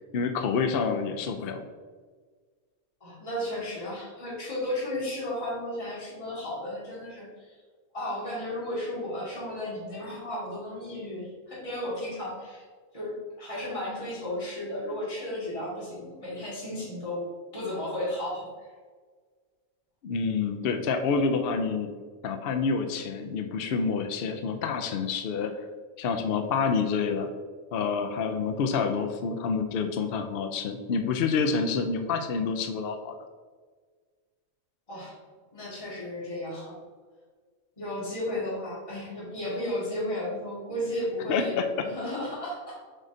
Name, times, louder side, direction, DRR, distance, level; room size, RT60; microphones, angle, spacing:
voice 1, 0.1-1.6 20.0-21.9 22.2-25.5 26.0-27.3 27.7-33.1 41.3-41.7, left 5 dB, 60° left, 5 dB, 0.6 m, -28 dB
voice 2, 3.0-7.6 7.9-12.7 12.9-17.2 17.5-18.4 34.9-35.1 35.5-36.7 37.8-42.6, left 1 dB, 25° left, -8 dB, 2.0 m, -34 dB
7.5 x 5.0 x 2.7 m, 1.5 s
omnidirectional pair, 1.5 m